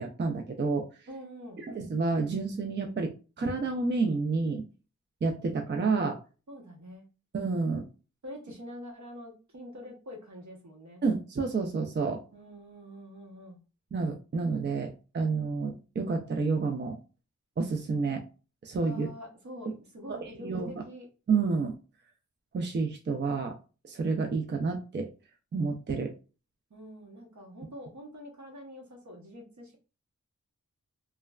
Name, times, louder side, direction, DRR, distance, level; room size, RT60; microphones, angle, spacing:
voice 1, 0.0-0.9 1.7-4.6 5.2-6.2 7.3-7.8 11.0-12.2 13.9-17.0 17.6-18.2 18.6-19.1 20.1-20.8 21.3-21.7 22.5-23.6 23.8-25.1 25.5-26.1, right 4 dB, 40° right, 3 dB, 0.4 m, -29 dB
voice 2, 1.1-1.6 6.5-7.0 8.2-11.0 12.3-13.6 18.8-21.1 26.7-29.8, equal, 70° right, 0 dB, 1.0 m, -45 dB
3.1 x 2.2 x 2.3 m, 0.33 s
wide cardioid pair, 65°, 30 cm